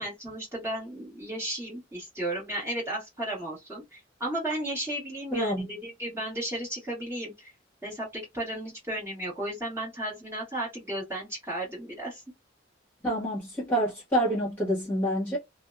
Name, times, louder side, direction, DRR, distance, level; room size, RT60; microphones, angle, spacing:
voice 1, 0.0-7.5 7.8-12.2, right 1 dB, 15° right, 1.4 m, -34 dB
voice 2, 5.3-5.7 13.0-15.4, equal, 10° left, 1.3 m, -27 dB
2.6 x 2.1 x 2.4 m
head